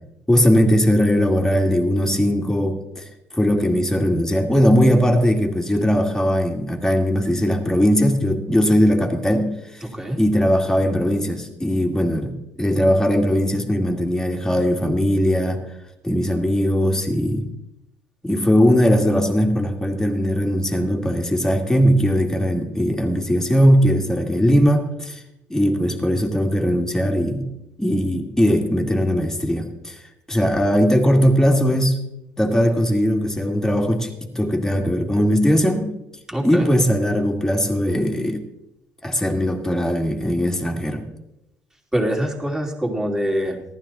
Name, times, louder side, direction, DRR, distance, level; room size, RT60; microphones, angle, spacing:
voice 1, 0.3-3.0 3.4-9.5 10.2-15.6 16.0-17.5 18.2-25.2 25.5-27.5 27.8-30.0 30.3-32.0 32.4-35.9 36.4-38.4 39.0-41.1, equal, 10° left, 2 dB, 2.2 m, -19 dB
voice 2, 9.8-10.2 36.3-36.7 41.9-43.6, equal, 10° right, 1 dB, 3.1 m, -24 dB
14.5 x 12.0 x 4.3 m, 0.87 s
supercardioid pair, 85°, 6 cm